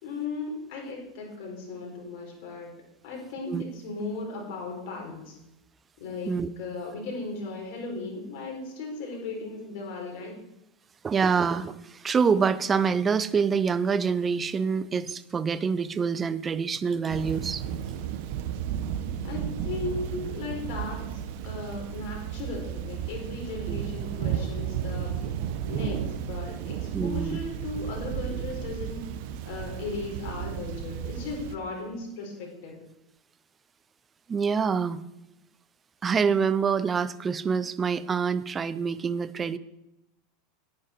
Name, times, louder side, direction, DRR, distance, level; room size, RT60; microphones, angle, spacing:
voice 1, 0.0-2.7 3.0-5.4 6.0-6.3 6.6-10.4 19.2-25.3 25.7-29.0 29.4-32.8, left 3 dB, 65° left, 0 dB, 4.3 m, -36 dB
voice 2, 11.0-17.6 23.7-23.8 26.9-27.4 34.3-35.0 36.0-39.6, right 6 dB, 25° right, 15 dB, 0.6 m, -26 dB
Thunder / Rain, 17.1-31.6, right 9 dB, 65° right, 0.9 m, -33 dB
9.7 x 9.7 x 4.5 m, 0.89 s
hypercardioid pair, 105°, 0 cm